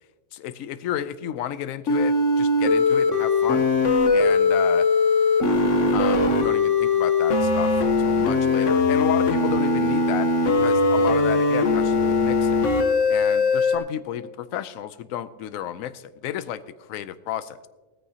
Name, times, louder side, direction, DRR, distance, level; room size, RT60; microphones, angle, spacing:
voice 1, 0.3-3.6 4.1-4.9 5.9-7.7 8.0-10.3 10.6-12.7 13.1-17.7, left 11 dB, 80° left, 14 dB, 1.0 m, -32 dB
sound 1, 1.9-13.8, left 3 dB, 65° left, 1.4 m, -20 dB
16.5 x 14.0 x 2.8 m, 1.3 s
omnidirectional pair, 1.4 m